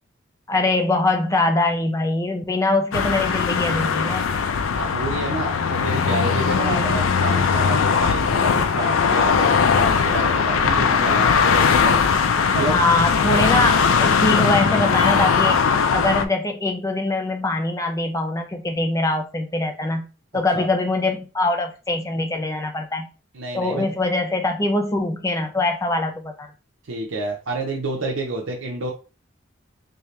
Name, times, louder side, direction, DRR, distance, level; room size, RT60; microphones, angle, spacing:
voice 1, 0.5-4.3 6.5-7.0 12.6-20.1 20.3-23.1 23.5-26.5, left 2 dB, 15° left, 5 dB, 0.4 m, -23 dB
sound 1, 2.9-16.2, left 6 dB, 85° left, 0.4 m, -19 dB
voice 2, 4.8-12.0 12.5-12.7 20.5-20.7 23.3-23.9 26.9-28.9, right 2 dB, 90° right, 0 dB, 0.7 m, -29 dB
3.4 x 2.7 x 3.2 m, 0.33 s
head